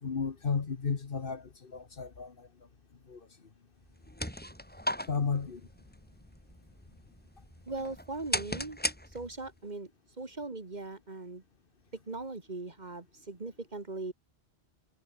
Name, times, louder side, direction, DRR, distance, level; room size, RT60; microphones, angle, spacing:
voice 1, 0.0-2.5 3.1-3.2 5.1-5.6, left 5 dB, 50° left, 1.4 m, -33 dB
sound 1, 3.8-9.6, equal, 10° left, 4.1 m, -38 dB
voice 2, 7.7-8.8 9.1-9.9 10.2-11.4 12.1-14.1, right 3 dB, 40° right, 2.0 m, -39 dB
omnidirectional pair, 1.2 m